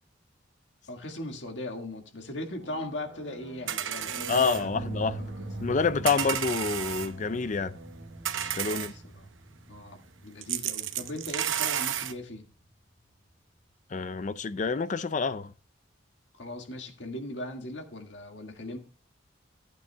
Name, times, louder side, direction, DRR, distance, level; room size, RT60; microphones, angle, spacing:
voice 1, 0.9-5.5 8.6-9.3 9.7-12.5 16.3-18.8, left 1 dB, 70° left, 1.8 m, -39 dB
sound 1, 2.5-9.9, right 1 dB, 70° right, 1.3 m, -48 dB
sound 2, 3.7-4.6 6.1-7.1 8.3-8.9 10.4-12.1, right 10 dB, 90° right, 0.8 m, -32 dB
sound 3, 4.0-12.4, right 2 dB, 5° right, 0.7 m, -43 dB
voice 2, 4.3-5.2 5.6-7.8 8.5-8.9 13.9-15.5, left 4 dB, 40° left, 0.4 m, -28 dB
14.5 x 9.0 x 2.2 m
head